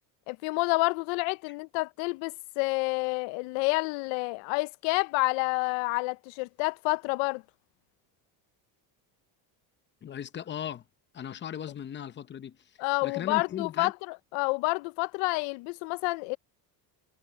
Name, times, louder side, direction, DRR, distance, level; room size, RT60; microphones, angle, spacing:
voice 1, 0.3-7.4 12.8-16.4, left 26 dB, 85° left, 0.7 m, -29 dB
voice 2, 10.0-10.8 11.1-12.6 13.0-13.9, left 9 dB, 25° left, 0.7 m, -37 dB
cardioid pair, 145°, 44 cm